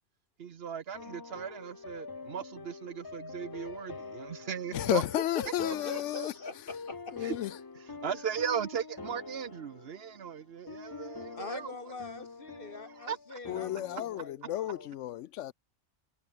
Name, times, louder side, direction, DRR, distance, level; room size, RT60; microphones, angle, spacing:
voice 1, 0.4-5.0 7.2-7.4 8.0-11.7 13.0-13.4, right 7 dB, 60° right, 1.0 m, -37 dB
sound 1, 0.9-14.2, left 4 dB, 25° left, 0.5 m, -45 dB
voice 2, 4.7-6.3 7.1-7.6 13.5-15.5, left 13 dB, 85° left, 0.9 m, -32 dB
voice 3, 5.3-7.2 11.4-14.9, left 3 dB, 50° left, 2.2 m, -42 dB
omnidirectional pair, 1.2 m